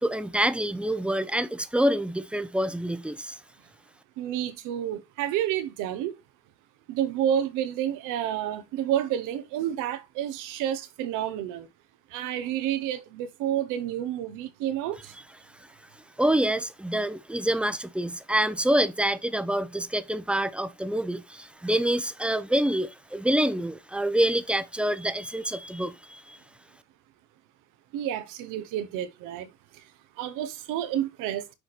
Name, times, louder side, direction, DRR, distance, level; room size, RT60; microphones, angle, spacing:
voice 1, 0.0-3.4 16.2-26.4, right 1 dB, 5° right, 0.8 m, -26 dB
voice 2, 4.2-6.2 6.9-11.7 12.1-15.1 27.9-29.5 30.2-31.4, right 11 dB, 90° right, 1.1 m, -29 dB
6.5 x 4.9 x 4.2 m
supercardioid pair, 75°, 30 cm